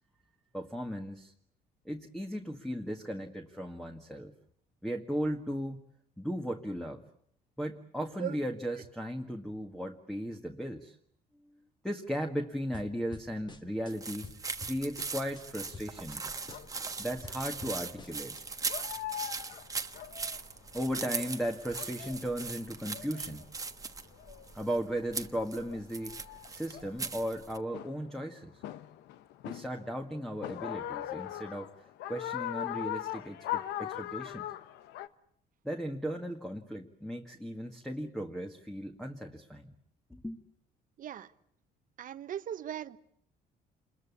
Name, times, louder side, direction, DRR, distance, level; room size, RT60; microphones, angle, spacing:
voice 1, 0.5-1.3 1.9-4.3 4.8-5.8 6.2-7.0 7.6-11.0 11.8-14.3 14.6-16.2 17.0-18.4 18.6-18.7 20.7-23.5 24.5-26.2 26.5-28.6 29.4-34.4 35.6-39.8 40.1-40.4, equal, 5° left, 4 dB, 1.8 m, -36 dB
sound 1, 12.7-13.9 14.2-15.4 15.7-16.2 16.5-18.4, left 3 dB, 25° left, 1.9 m, -49 dB
sound 2, 13.9-27.6, right 4 dB, 20° right, 1.3 m, -40 dB
sound 3, 16.5-16.7 17.5-17.8 18.3-18.4 18.7-21.3 21.6-22.2 22.6-23.4 24.1-24.5 25.3-25.4 25.7-27.4 27.7-28.1 28.6-30.0 30.4-35.1, left 13 dB, 85° left, 1.0 m, -40 dB
voice 2, 41.0-41.3 42.0-43.0, right 10 dB, 55° right, 12 dB, 1.2 m, -38 dB
27.5 x 22.0 x 8.4 m, 0.66 s
cardioid pair, 110°, 17 cm